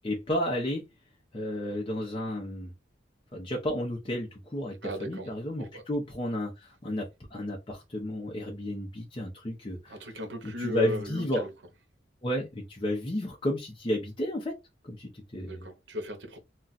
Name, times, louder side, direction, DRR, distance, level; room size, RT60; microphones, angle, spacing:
voice 1, 0.0-0.8 1.3-2.7 3.3-10.1 10.4-11.5 12.2-14.6 14.8-15.7, equal, 30° left, 0.6 m, -32 dB
voice 2, 4.8-5.3 5.6-5.8 9.9-11.5 15.4-16.4, left 1 dB, 80° right, 0.8 m, -36 dB
2.4 x 2.3 x 3.9 m
head